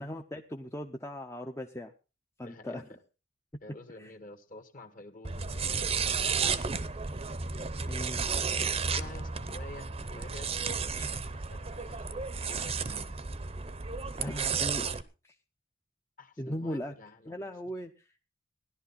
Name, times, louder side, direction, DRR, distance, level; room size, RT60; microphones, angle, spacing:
voice 1, 0.0-1.9 2.4-2.8 4.0-4.1 7.9-8.3 14.1-14.8 15.2-15.3 16.4-16.9 17.3-18.2, equal, 15° left, 4 dB, 0.6 m, -38 dB
voice 2, 2.4-3.0 3.6-7.0 8.9-13.2 14.2-14.7 16.2-17.5, left 2 dB, 40° left, 7 dB, 1.7 m, -50 dB
sound 1, 5.2-15.0, right 5 dB, 30° right, 0.7 m, -33 dB
16.5 x 11.5 x 4.1 m, 0.31 s
head